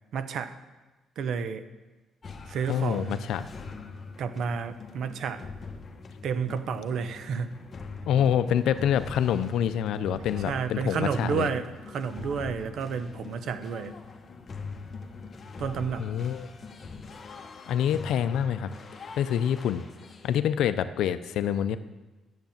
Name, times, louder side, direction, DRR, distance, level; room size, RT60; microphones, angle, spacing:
voice 1, 0.1-0.6 1.2-1.6 2.5-3.2 4.2-5.4 6.2-7.6 10.5-13.9 15.6-16.1, right 6 dB, 70° right, 11 dB, 0.8 m, -31 dB
sound 1, 2.2-20.4, left 4 dB, 40° left, 1.2 m, -43 dB
voice 2, 2.7-3.5 8.1-11.5 16.0-16.5 17.7-18.7 19.2-19.8 20.2-21.8, left 9 dB, 80° left, 12 dB, 0.6 m, -26 dB
10.5 x 7.6 x 7.1 m, 1.2 s
cardioid pair, 90°, 0 cm